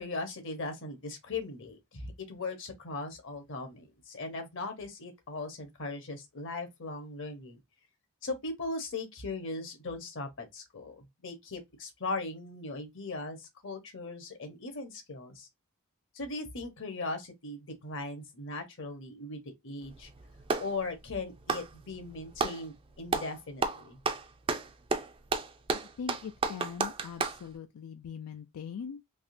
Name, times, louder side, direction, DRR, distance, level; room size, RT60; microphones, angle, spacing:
voice 1, 0.0-7.6 8.2-15.5 16.1-20.1 20.6-24.0, left 3 dB, 60° left, 1.0 m, -39 dB
Clapping, 19.8-20.8 21.4-22.6 23.1-23.3 23.6-27.4, right 4 dB, 25° right, 0.4 m, -31 dB
voice 2, 25.7-29.0, left 6 dB, 85° left, 0.4 m, -41 dB
3.5 x 2.8 x 2.6 m
head